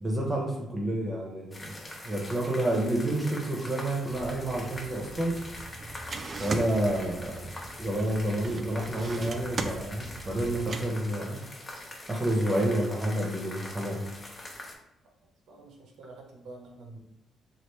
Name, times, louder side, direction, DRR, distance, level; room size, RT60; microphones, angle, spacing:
voice 1, 0.0-1.7 2.0-5.4 6.4-7.5 7.8-11.4 12.1-14.0, right 1 dB, 20° right, -2 dB, 0.8 m, -29 dB
sound 1, 1.5-14.7, left 1 dB, 25° left, 0.6 m, -44 dB
sound 2, 4.1-10.8, right 3 dB, 40° right, 0.4 m, -40 dB
voice 2, 15.5-17.0, right 2 dB, 80° right, 1 dB, 0.7 m, -48 dB
3.2 x 2.4 x 3.1 m, 0.88 s
cardioid pair, 90°, 0 cm